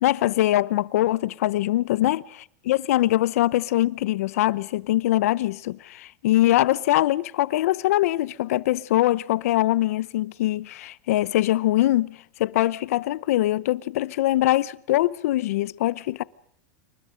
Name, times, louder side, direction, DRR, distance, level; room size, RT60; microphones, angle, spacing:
voice 1, 0.0-16.2, left 15 dB, 60° left, 0.9 m, -23 dB
28.0 x 24.5 x 5.2 m
supercardioid pair, 180°, 9 cm